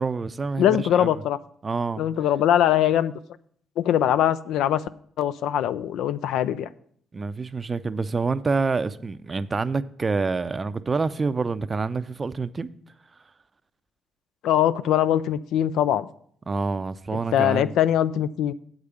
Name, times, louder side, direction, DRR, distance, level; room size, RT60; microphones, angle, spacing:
voice 1, 0.0-1.2 1.6-2.0 7.1-12.7 16.5-17.7, right 4 dB, 30° right, 0.5 m, -27 dB
voice 2, 0.6-1.4 2.0-3.1 3.8-4.8 5.2-6.7 14.4-16.1 17.3-18.5, left 11 dB, 80° left, 0.3 m, -22 dB
8.0 x 5.0 x 6.9 m
cardioid pair, 80°, 0 cm